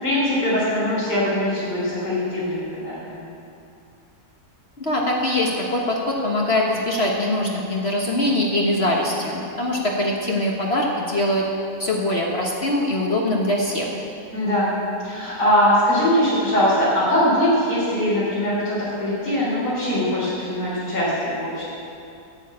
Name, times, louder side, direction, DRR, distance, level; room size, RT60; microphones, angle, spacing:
voice 1, 0.0-3.3 14.3-14.7 15.0-21.7, equal, 90° left, -9 dB, 4.5 m, -21 dB
voice 2, 4.8-11.4 11.8-13.9, left 1 dB, 40° left, -2 dB, 1.5 m, -22 dB
11.0 x 8.2 x 8.6 m, 2.6 s
omnidirectional pair, 1.7 m